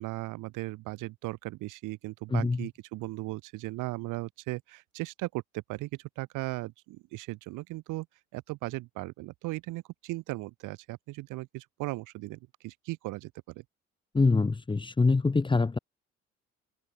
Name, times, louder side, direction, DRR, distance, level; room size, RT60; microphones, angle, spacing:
voice 1, 0.0-5.9 6.2-8.1 8.3-13.6, right 20 dB, 60° right, 6.4 m, -37 dB
voice 2, 2.3-2.7 14.1-15.8, left 3 dB, 15° left, 0.9 m, -25 dB
open air
figure-of-eight pair, 50°, 34 cm